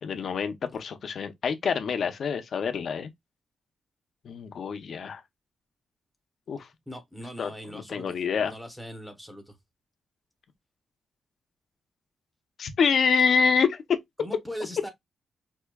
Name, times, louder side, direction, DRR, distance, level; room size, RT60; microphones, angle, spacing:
voice 1, 0.0-3.1 4.2-5.2 6.5-6.7 7.4-8.5 12.6-14.0, left 5 dB, 50° left, 0.5 m, -26 dB
voice 2, 6.9-9.6 14.2-14.9, equal, ahead, 0.8 m, -40 dB
4.5 x 2.7 x 2.2 m
wide cardioid pair, 175°, 0 cm